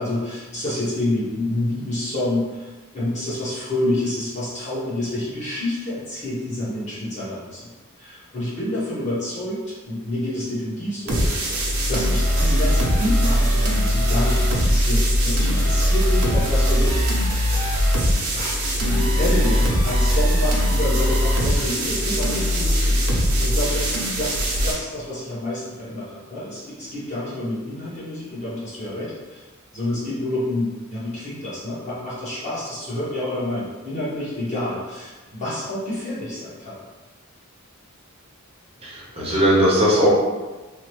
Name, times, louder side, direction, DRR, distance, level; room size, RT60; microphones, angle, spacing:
voice 1, 0.0-7.7 8.0-11.4 11.9-17.2 18.3-29.4 29.7-36.8, left 1 dB, 35° left, -9 dB, 1.0 m, -28 dB
sound 1, 11.1-24.7, equal, 75° right, 0.6 m, -20 dB
voice 2, 38.8-40.1, equal, 25° right, -5 dB, 0.6 m, -18 dB
3.0 x 2.0 x 2.9 m, 1.3 s
head